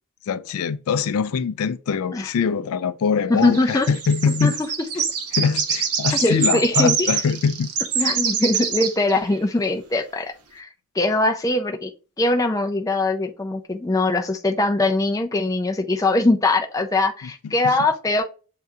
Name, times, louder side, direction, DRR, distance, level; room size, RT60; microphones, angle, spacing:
voice 1, 0.3-4.6 5.3-7.7 8.0-8.2 17.4-17.8, left 6 dB, 80° left, 0.3 m, -23 dB
voice 2, 3.3-3.9 4.4-4.5 5.0-5.1 6.2-7.1 8.0-10.7 10.9-11.9 12.2-18.2, left 2 dB, 15° left, 0.4 m, -22 dB
sound 1, 3.4-9.4, right 7 dB, 90° right, 0.9 m, -25 dB
7.6 x 2.7 x 2.4 m
head